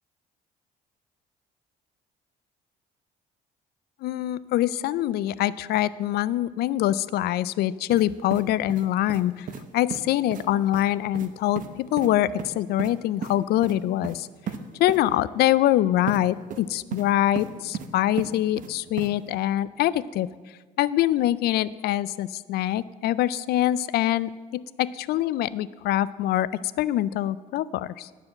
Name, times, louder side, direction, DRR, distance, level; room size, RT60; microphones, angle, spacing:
voice 1, 4.0-9.5 9.7-14.3 14.8-20.3 20.8-26.5 26.8-28.1, left 13 dB, 70° left, 18 dB, 0.4 m, -24 dB
sound 1, 7.9-8.1 8.3-9.2 9.5-9.6 9.9-10.0 10.3-10.5 10.7-10.9 11.1-11.3 11.6-11.7 12.0-12.1 12.4-12.9 13.2-13.4 13.6-13.8 14.0-14.2 14.5-14.6 14.9-15.0 16.1-16.2 16.5-17.1 17.4-17.9 18.2-18.7 19.0-19.1, right 8 dB, 50° right, 0.8 m, -34 dB
11.5 x 4.8 x 7.6 m, 1.4 s
cardioid pair, 110°, 17 cm